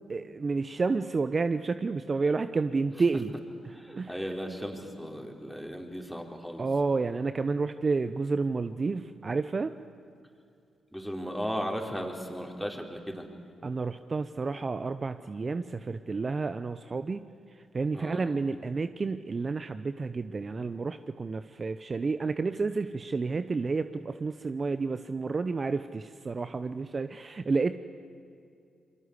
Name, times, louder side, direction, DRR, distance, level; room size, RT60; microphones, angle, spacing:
voice 1, 0.0-3.3 3.6-4.4 6.6-9.7 13.6-17.3 17.7-27.8, right 4 dB, 40° right, 11 dB, 0.8 m, -30 dB
voice 2, 3.7-6.6 10.9-13.2 17.9-18.3, equal, ahead, 2 dB, 4.7 m, -36 dB
28.5 x 22.0 x 8.3 m, 2.4 s
hypercardioid pair, 40°, 0 cm